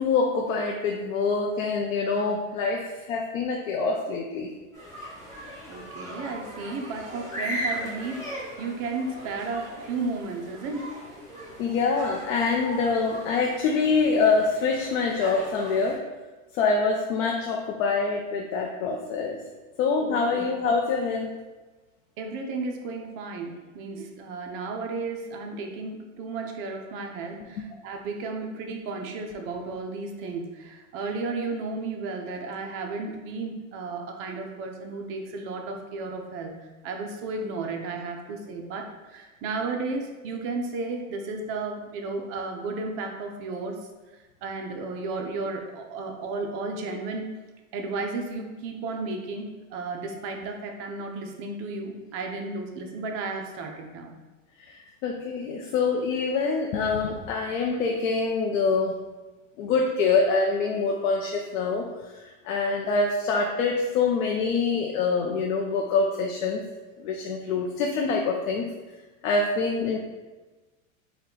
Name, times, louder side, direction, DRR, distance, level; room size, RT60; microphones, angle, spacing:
voice 1, 0.0-4.5 11.6-16.0 16.5-19.4 19.8-21.3 54.6-59.0 59.6-61.9 62.1-66.6 67.0-68.7 69.2-70.0, left 4 dB, 80° left, 0 dB, 0.6 m, -25 dB
sound 1, 4.7-16.0, equal, 5° left, 1.2 m, -38 dB
voice 2, 5.7-10.9 20.0-20.5 22.2-36.5 36.8-43.8 44.4-47.3 47.7-54.1, right 3 dB, 35° right, 3 dB, 0.4 m, -33 dB
4.1 x 2.3 x 3.7 m, 1.2 s
supercardioid pair, 135°, 40 cm